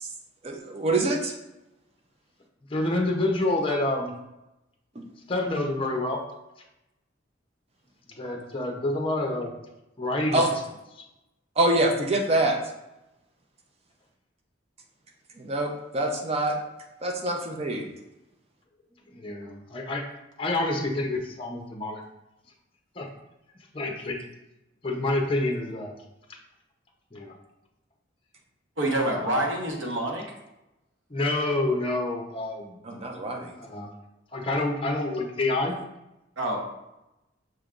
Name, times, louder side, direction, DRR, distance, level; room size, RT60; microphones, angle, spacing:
voice 1, 0.4-1.3 5.0-5.1 10.3-10.5 11.6-12.6 15.4-16.6 17.0-17.9 32.8-33.6, right 1 dB, 35° right, 3 dB, 0.6 m, -25 dB
voice 2, 2.7-4.1 5.3-6.2 8.1-9.5 10.0-10.6 11.0-11.1 19.1-20.0 20.4-22.0 23.0-23.1 23.7-24.2 24.8-26.0 26.3-26.4 27.1-27.3 31.1-32.8 33.6-33.9 34.3-35.7, left 2 dB, 30° left, 1 dB, 0.7 m, -28 dB
voice 3, 28.8-30.2 36.4-36.6, right 1 dB, 80° right, -1 dB, 1.0 m, -26 dB
6.0 x 3.3 x 2.5 m, 0.92 s
head